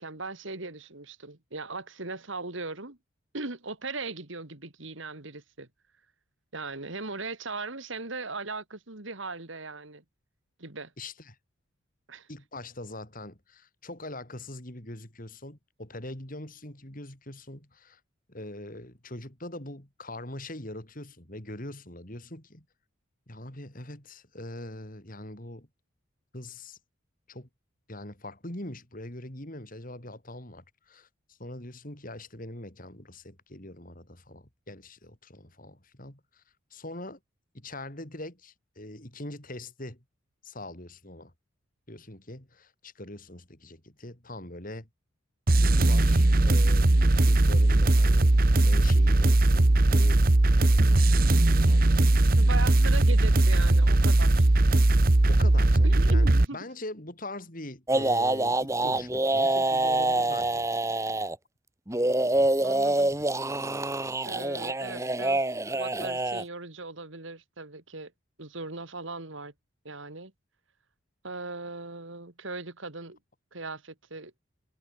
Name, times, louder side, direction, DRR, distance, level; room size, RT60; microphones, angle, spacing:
voice 1, 0.0-3.0 3.3-5.7 6.5-10.0 10.6-10.9 12.1-12.3 52.4-54.5 55.8-56.6 62.6-63.1 64.2-68.1 68.4-69.5 69.8-70.3 71.2-73.2 73.5-74.3, right 3 dB, 65° right, 2.5 m, -38 dB
voice 2, 11.0-11.4 12.3-18.0 18.3-22.7 23.3-25.7 26.3-26.8 27.3-27.5 27.9-36.4 36.7-37.2 37.5-40.0 40.4-41.3 41.9-44.9 45.6-50.3 50.6-51.9 55.3-60.7, left 1 dB, 40° left, 4.1 m, -42 dB
sound 1, 45.5-56.4, right 2 dB, 45° right, 1.0 m, -20 dB
sound 2, 57.9-61.3 61.9-66.4, right 2 dB, 15° right, 1.5 m, -26 dB
head